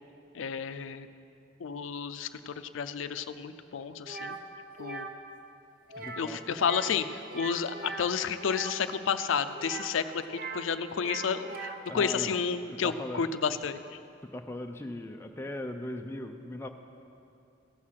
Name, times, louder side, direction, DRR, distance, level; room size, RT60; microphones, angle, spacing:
voice 1, 0.3-1.1 1.6-4.4 4.8-5.1 6.2-14.0, left 6 dB, 80° left, 11 dB, 0.4 m, -31 dB
sound 1, 4.1-4.4 4.8-5.1 5.9-6.3 6.5-6.9 7.2-8.7 9.5-10.7 10.9-11.9, right 3 dB, 45° right, 0.7 m, -40 dB
voice 2, 6.0-7.0 11.9-12.4 12.8-13.3 14.3-16.7, left 1 dB, 10° left, 4 dB, 0.4 m, -39 dB
15.0 x 6.4 x 5.7 m, 2.6 s
head